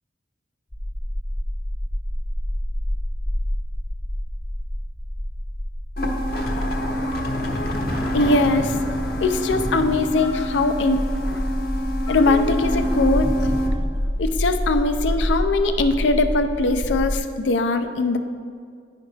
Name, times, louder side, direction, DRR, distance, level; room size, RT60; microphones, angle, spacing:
sound 1, 0.7-17.2, equal, 15° left, 0.5 m, -28 dB
sound 2, 6.0-13.7, equal, 55° left, 0.8 m, -26 dB
voice 1, 8.1-8.8 9.2-11.1 12.1-13.3 14.2-18.2, left 3 dB, 85° left, 8 dB, 0.5 m, -21 dB
9.8 x 4.9 x 3.3 m, 2.1 s
head